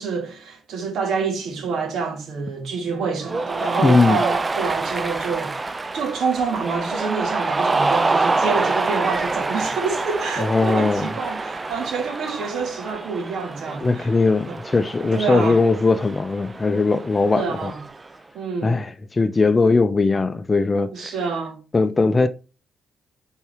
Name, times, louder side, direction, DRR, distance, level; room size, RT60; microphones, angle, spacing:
voice 1, 0.0-5.6 5.9-14.1 14.5-14.6 15.1-15.6 17.3-17.8 18.3-18.8 20.9-21.6, right 5 dB, 70° right, 2.5 m, -27 dB
Cheering, 3.2-18.1, right 3 dB, 25° right, 0.5 m, -26 dB
voice 2, 3.8-4.2 10.4-11.1 13.8-17.7 18.6-21.1 21.7-22.3, left 3 dB, 25° left, 0.6 m, -19 dB
5.5 x 4.5 x 4.6 m
cardioid pair, 90°, 0 cm